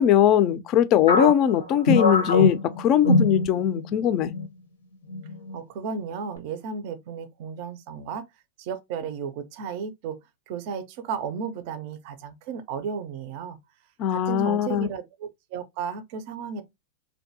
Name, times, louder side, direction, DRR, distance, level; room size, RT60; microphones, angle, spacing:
voice 1, 0.0-4.3 14.0-14.9, left 10 dB, 45° left, 0.3 m, -21 dB
sound 1, 1.1-3.9 4.2-4.5 5.1-5.6, left 2 dB, 90° left, 0.6 m, -23 dB
voice 2, 5.5-8.3 8.6-10.2 10.5-13.6 14.1-16.7, right 6 dB, 55° right, 0.4 m, -34 dB
2.6 x 2.2 x 2.6 m
hypercardioid pair, 105°, 0 cm